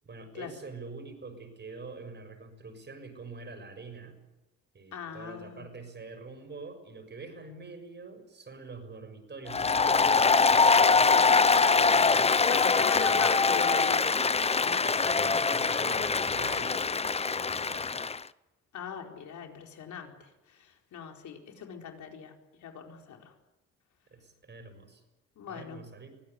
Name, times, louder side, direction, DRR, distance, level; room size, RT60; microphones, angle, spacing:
voice 1, 0.0-4.2 4.7-13.5 14.8-17.9 24.1-25.0 25.5-26.1, right 4 dB, 35° right, 8 dB, 6.6 m, -45 dB
voice 2, 4.9-5.6 12.5-14.2 14.6-14.9 18.7-22.3 22.6-23.2 25.4-25.8, left 7 dB, 70° left, 2 dB, 4.5 m, -40 dB
Applause, 9.5-18.2, left 4 dB, 20° left, 0.7 m, -23 dB
23.5 x 16.5 x 9.6 m, 1.0 s
cardioid pair, 90°, 30 cm